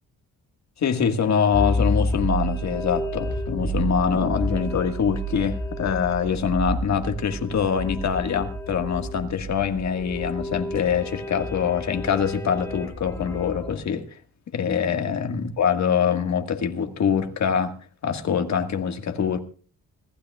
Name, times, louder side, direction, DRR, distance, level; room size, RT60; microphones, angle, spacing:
voice 1, 0.8-14.2 14.5-17.7 18.0-19.4, left 7 dB, 50° left, 1.8 m, -24 dB
sound 1, 1.5-13.8, right 1 dB, 10° left, 3.1 m, -30 dB
25.0 x 15.5 x 2.4 m
wide cardioid pair, 160°, 35 cm